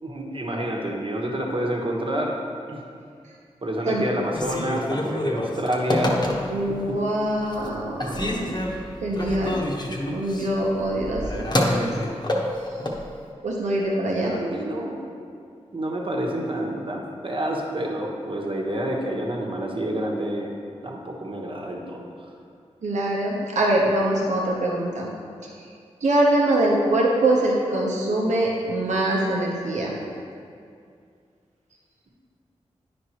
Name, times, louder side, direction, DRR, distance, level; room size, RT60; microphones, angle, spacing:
voice 1, 0.0-2.8 3.6-6.2 6.9-7.0 13.7-15.1 15.7-20.6 20.8-22.1, right 1 dB, 45° right, -1 dB, 1.2 m, -28 dB
Telephone, 4.3-6.7 7.2-7.7 8.0-13.0, left 1 dB, 35° left, 1.0 m, -27 dB
voice 2, 6.5-8.6 9.0-9.6 10.1-11.9 12.7-12.8 13.4-14.3 22.8-25.1 25.6-25.7 26.0-30.0, right 1 dB, 80° right, -3 dB, 0.9 m, -23 dB
9.6 x 5.1 x 3.0 m, 2.3 s
cardioid pair, 40°, 12 cm